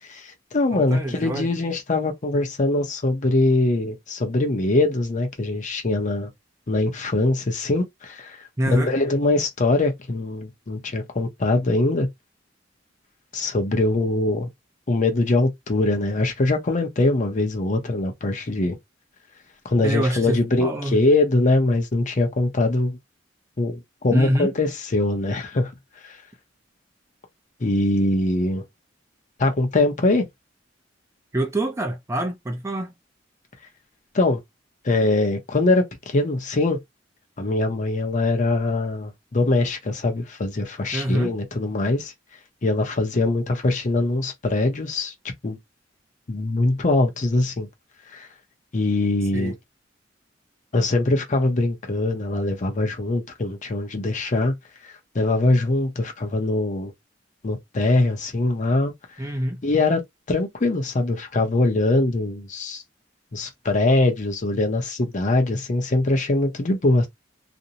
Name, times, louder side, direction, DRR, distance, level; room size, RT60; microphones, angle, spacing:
voice 1, 0.1-6.3 6.7-8.4 8.7-12.1 13.3-14.5 14.9-18.8 19.6-23.0 23.6-25.7 26.0-26.2 27.6-28.6 29.4-30.3 34.1-34.4 34.8-36.8 37.4-42.1 42.6-45.1 45.4-45.6 46.3-47.7 48.1-48.3 48.7-49.5 50.7-54.5 54.8-56.9 57.4-58.9 59.6-60.0 60.3-62.8 63.3-67.1, left 2 dB, 40° left, 0.7 m, -22 dB
voice 2, 0.7-1.5 8.6-8.9 19.8-21.0 24.1-24.5 31.3-32.9 40.9-41.3 49.3-49.5 59.2-59.6, right 1 dB, 15° right, 0.4 m, -25 dB
2.5 x 2.0 x 2.8 m
head